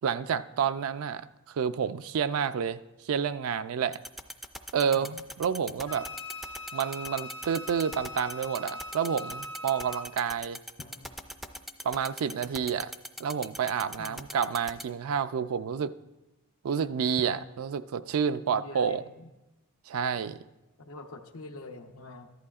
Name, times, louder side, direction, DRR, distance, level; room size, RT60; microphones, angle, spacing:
voice 1, 0.0-4.0 4.7-6.1 6.7-10.6 11.8-12.9 13.2-15.9 16.6-19.0 19.9-20.4, right 7 dB, 75° right, 12 dB, 0.4 m, -29 dB
sound 1, 3.9-14.8, equal, ahead, 0.3 m, -39 dB
sound 2, 5.7-7.9 10.8-13.7 17.2-19.1, left 2 dB, 40° left, 0.6 m, -55 dB
Wind instrument woodwind instrument, 5.9-10.1, left 2 dB, 60° left, 0.9 m, -41 dB
voice 2, 18.4-19.3 20.8-22.3, left 2 dB, 85° left, 4 dB, 0.8 m, -45 dB
14.0 x 11.5 x 2.4 m, 0.99 s
head